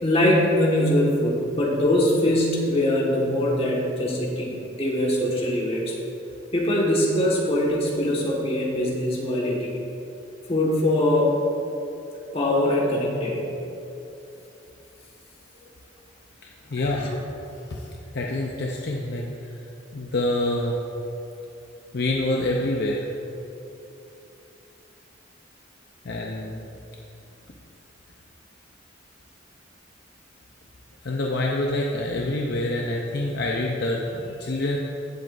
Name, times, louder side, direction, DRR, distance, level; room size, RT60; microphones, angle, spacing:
voice 1, 0.0-5.9 6.5-9.8 10.5-11.3 12.3-13.5 16.9-17.2, left 1 dB, 30° left, -3 dB, 1.6 m, -22 dB
voice 2, 16.7-17.2 17.7-17.8 18.1-19.3 19.9-20.7 21.9-23.1 26.0-26.7 31.0-34.8, left 1 dB, 55° left, -1 dB, 0.7 m, -26 dB
15.5 x 7.7 x 2.6 m, 2.9 s
head